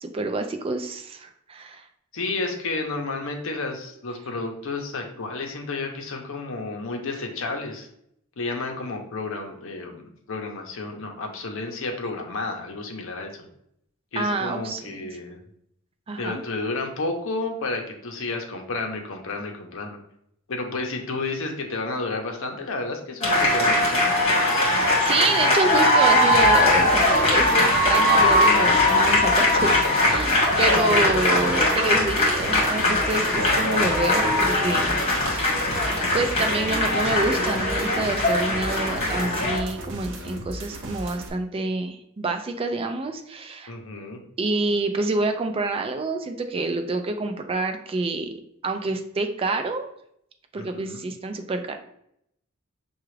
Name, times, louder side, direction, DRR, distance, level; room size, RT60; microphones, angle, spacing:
voice 1, 0.0-1.9 14.2-15.1 16.1-16.4 24.6-35.6 36.1-43.7 44.4-48.3 48.6-49.9 50.5-51.8, right 3 dB, 25° right, 6 dB, 0.3 m, -27 dB
voice 2, 2.1-7.9 8.4-13.3 14.1-15.4 16.2-20.0 20.5-24.1 43.7-44.2 50.5-51.0, left 3 dB, 65° left, 3 dB, 0.7 m, -31 dB
sound 1, 23.2-39.6, left 1 dB, 30° left, 1.4 m, -20 dB
sound 2, 26.3-41.3, equal, 60° right, 0.8 m, -36 dB
5.8 x 2.4 x 3.1 m, 0.74 s
head